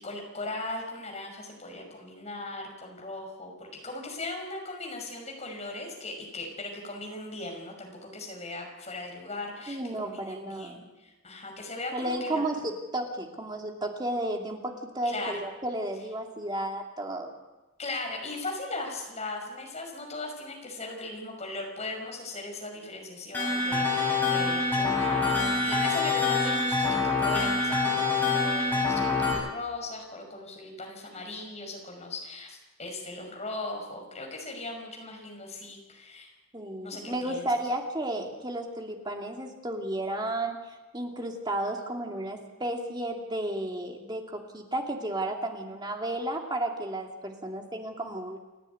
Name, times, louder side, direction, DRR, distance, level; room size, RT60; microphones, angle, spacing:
voice 1, 0.0-12.4 15.0-15.4 17.8-36.3 36.8-37.5, left 2 dB, 30° left, 2 dB, 5.8 m, -38 dB
voice 2, 9.7-10.8 11.9-17.3 36.5-48.4, right 1 dB, 20° right, 2 dB, 2.5 m, -33 dB
sound 1, 23.3-29.3, left 3 dB, 10° left, 6.9 m, -26 dB
29.5 x 10.5 x 9.5 m, 1.1 s
head